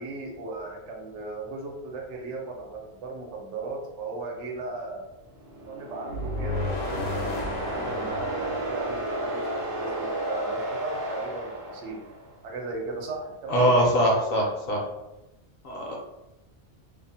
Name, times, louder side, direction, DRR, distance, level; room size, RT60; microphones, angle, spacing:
voice 1, 0.0-5.0 5.6-12.0 12.4-13.8, right 3 dB, 75° right, 1 dB, 0.9 m, -36 dB
sound 1, 5.3-12.4, right 1 dB, 45° right, 0.4 m, -33 dB
sound 2, 6.1-10.2, left 2 dB, 85° left, 0.9 m, -34 dB
voice 2, 13.5-14.8 15.6-16.0, equal, 60° left, -2 dB, 0.7 m, -22 dB
2.5 x 2.0 x 2.6 m, 0.94 s
omnidirectional pair, 1.2 m